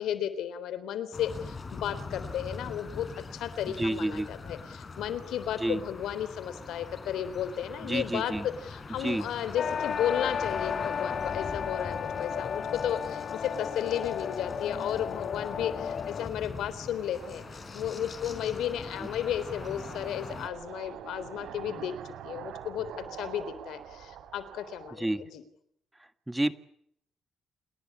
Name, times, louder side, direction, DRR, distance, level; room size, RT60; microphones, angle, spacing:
voice 1, 0.0-17.4 17.7-21.9 22.2-25.4, left 10 dB, 80° left, 14 dB, 3.6 m, -34 dB
sound 1, 1.1-20.5, left 4 dB, 35° left, 4.9 m, -42 dB
voice 2, 3.8-4.3 5.6-5.8 7.8-8.5 9.0-9.2 19.0-19.1 25.0-25.2 26.3-26.5, right 1 dB, 10° right, 11 dB, 1.6 m, -29 dB
sound 2, 9.6-16.3, left 7 dB, 55° left, 1.5 m, -34 dB
sound 3, 16.6-24.9, right 9 dB, 80° right, 3.5 m, -46 dB
29.0 x 20.5 x 9.9 m, 0.72 s
cardioid pair, 90°, 0 cm